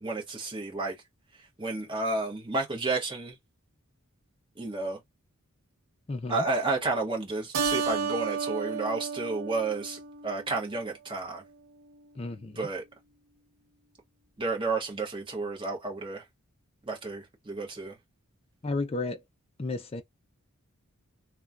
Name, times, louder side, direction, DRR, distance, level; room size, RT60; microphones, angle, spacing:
voice 1, 0.0-0.9 1.6-3.4 4.6-5.0 6.3-11.4 12.6-12.8 14.4-16.2 16.9-18.0, right 3 dB, 25° right, 1.0 m, -31 dB
voice 2, 6.1-6.4 12.2-12.7 18.6-19.2 19.6-20.0, left 3 dB, 25° left, 0.4 m, -32 dB
Keyboard (musical), 7.5-10.4, right 5 dB, 75° right, 0.7 m, -32 dB
3.1 x 2.2 x 2.5 m
head